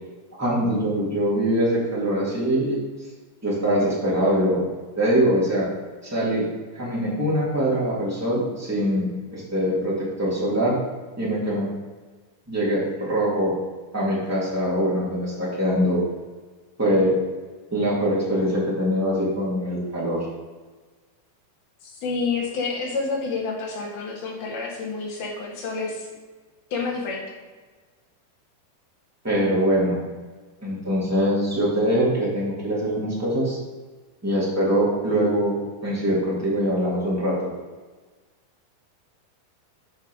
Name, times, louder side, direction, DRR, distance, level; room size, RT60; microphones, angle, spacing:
voice 1, 0.4-2.8 3.4-4.6 5.0-5.7 6.0-6.5 6.7-10.8 11.2-11.7 12.5-13.5 13.9-16.0 16.8-17.1 17.7-20.3 29.2-30.0 30.6-33.6 34.2-35.6 35.8-37.4, equal, 5° right, -7 dB, 1.5 m, -23 dB
voice 2, 21.8-26.1 26.7-27.2, left 4 dB, 80° left, -3 dB, 3.5 m, -29 dB
7.9 x 3.8 x 6.2 m, 1.4 s
omnidirectional pair, 4.3 m